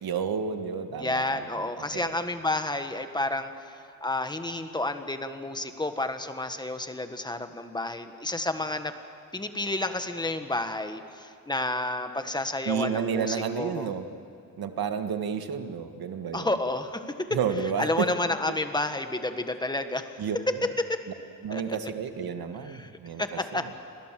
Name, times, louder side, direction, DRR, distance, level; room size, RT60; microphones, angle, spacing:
voice 1, 0.0-1.5 1.8-2.1 12.6-14.0 14.6-16.5 17.3-18.1 20.2-20.7 21.4-23.4, right 6 dB, 85° right, 7 dB, 1.8 m, -31 dB
voice 2, 1.0-3.5 4.0-8.9 9.3-13.9 16.3-17.4 17.8-20.1 20.5-21.0 21.5-21.6 22.7-22.9 23.2-23.6, left 2 dB, 10° left, 8 dB, 1.5 m, -30 dB
29.5 x 24.5 x 7.6 m, 2.5 s
wide cardioid pair, 155°, 35 cm